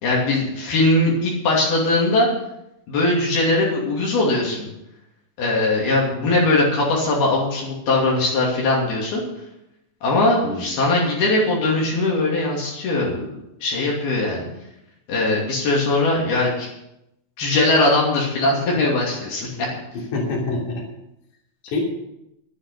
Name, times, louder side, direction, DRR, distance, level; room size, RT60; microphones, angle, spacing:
voice 1, 0.0-2.3 2.9-4.7 5.4-9.2 10.0-13.3 13.6-14.4 15.1-16.7 17.4-19.7, left 2 dB, 65° left, -3 dB, 4.5 m, -20 dB
voice 2, 19.9-20.8 21.6-21.8, left 2 dB, 50° left, -2 dB, 4.1 m, -26 dB
11.5 x 10.0 x 6.8 m, 0.85 s
omnidirectional pair, 4.9 m